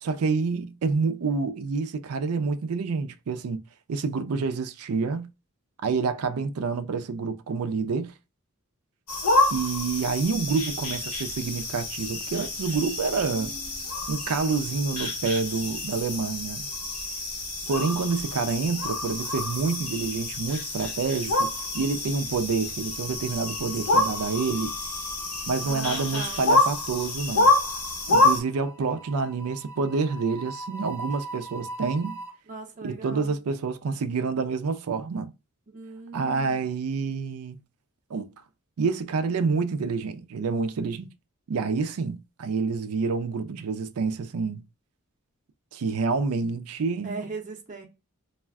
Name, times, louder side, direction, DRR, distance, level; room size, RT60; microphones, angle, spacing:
voice 1, 0.0-3.6 3.9-5.3 5.8-8.1 9.5-13.5 14.1-16.7 17.7-21.5 21.7-24.7 25.5-27.5 28.1-32.2 32.8-35.3 36.1-37.6 38.1-38.3 38.8-41.1 41.5-44.6 45.7-47.2, right 4 dB, 75° right, 0.4 m, -28 dB
sound 1, 9.1-28.4, left 2 dB, 85° left, 1.0 m, -27 dB
voice 2, 13.3-13.8 25.7-26.4 32.5-33.3 35.7-36.7 47.0-47.9, right 3 dB, 35° right, 0.7 m, -39 dB
sound 2, 20.2-21.0 21.3-21.6 22.7-32.3, right 1 dB, 15° left, 1.0 m, -42 dB
2.4 x 2.2 x 3.4 m
head